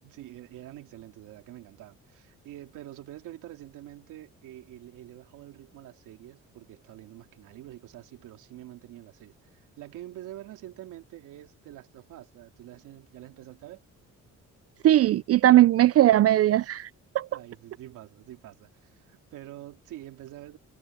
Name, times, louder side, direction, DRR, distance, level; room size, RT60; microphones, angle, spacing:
voice 1, 0.0-13.8 17.3-20.6, right 14 dB, 90° right, 2.8 m, -46 dB
voice 2, 14.8-16.9 17.1-17.3, right 13 dB, 50° right, 0.4 m, -19 dB
cardioid pair, 90°, 30 cm